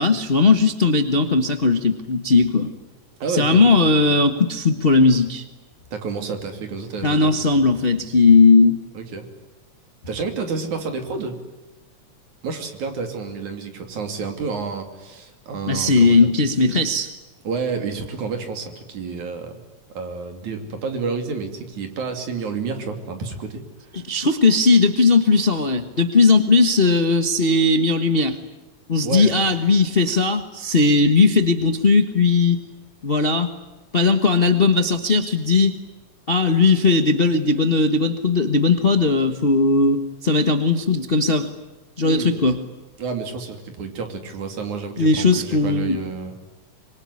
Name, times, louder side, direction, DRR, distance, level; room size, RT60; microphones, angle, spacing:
voice 1, 0.0-2.7 3.3-5.4 7.0-8.8 15.7-17.1 23.9-28.4 28.9-32.6 33.0-33.5 33.9-35.8 36.3-41.5 42.0-42.6 45.0-46.0, left 3 dB, 40° left, 8 dB, 0.7 m, -17 dB
voice 2, 3.2-4.2 5.9-7.3 8.9-9.3 10.1-11.4 12.4-16.3 17.4-19.6 19.9-23.7 23.9-24.0 29.0-29.3 42.0-42.3 43.0-46.3, right 4 dB, 80° right, 6 dB, 4.3 m, -30 dB
25.5 x 23.5 x 9.8 m, 1.2 s
omnidirectional pair, 3.3 m